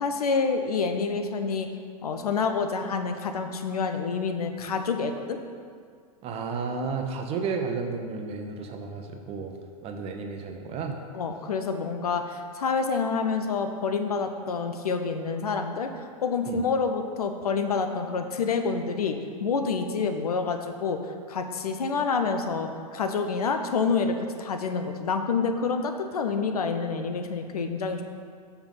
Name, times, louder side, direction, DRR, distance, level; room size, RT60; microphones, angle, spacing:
voice 1, 0.0-1.7 2.0-5.4 11.1-21.0 21.3-28.0, left 5 dB, 75° left, 6 dB, 0.8 m, -28 dB
voice 2, 6.2-9.5 9.8-11.0 16.5-16.6, right 4 dB, 30° right, 4 dB, 1.0 m, -32 dB
7.0 x 5.7 x 5.8 m, 2.1 s
hypercardioid pair, 110°, 19 cm